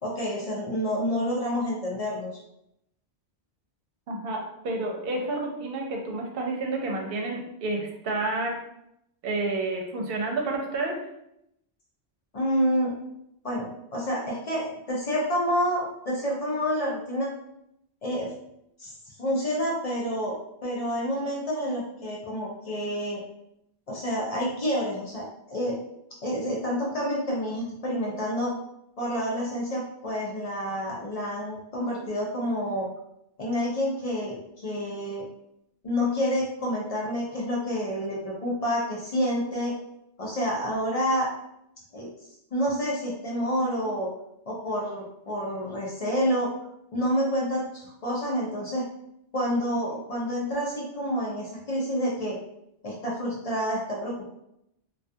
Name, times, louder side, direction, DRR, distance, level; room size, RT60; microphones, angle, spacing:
voice 1, 0.0-2.3 12.3-13.0 13.4-17.3 18.0-18.3 18.8-18.9 19.2-23.2 23.9-25.8 26.2-28.5 29.0-32.9 33.4-35.2 35.8-39.7 40.2-41.3 41.9-42.1 42.5-44.1 44.5-46.5 46.9-48.9 49.3-52.4 52.8-54.3, equal, 45° left, -3 dB, 0.6 m, -28 dB
voice 2, 4.1-8.5 9.2-11.0, right 2 dB, 65° right, 1 dB, 0.8 m, -30 dB
2.3 x 2.2 x 2.6 m, 0.79 s
omnidirectional pair, 1.1 m